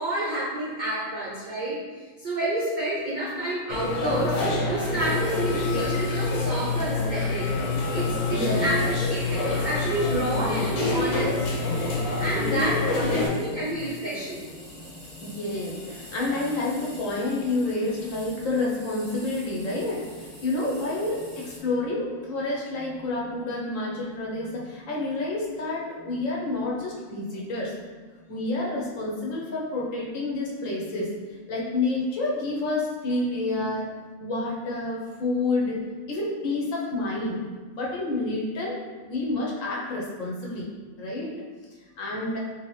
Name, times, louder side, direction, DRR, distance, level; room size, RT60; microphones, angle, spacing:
voice 1, 0.0-1.8 2.2-4.4 4.7-7.5 7.9-8.8 9.1-11.3 12.2-14.5, right 1 dB, 80° right, -6 dB, 0.4 m, -29 dB
sound 1, 3.7-13.3, left 3 dB, 85° left, 1.2 m, -26 dB
sound 2, 5.0-21.6, equal, 25° left, 0.3 m, -46 dB
voice 2, 7.3-8.0 8.2-8.7 9.3-9.6 11.0-11.1 11.6-13.9 14.6-27.8 28.3-33.9 34.2-35.8 36.1-37.4 37.8-38.8 39.1-40.7 41.0-41.3 42.0-42.4, left 2 dB, 65° left, -3 dB, 1.0 m, -29 dB
3.3 x 2.7 x 3.1 m, 1.4 s
omnidirectional pair, 1.5 m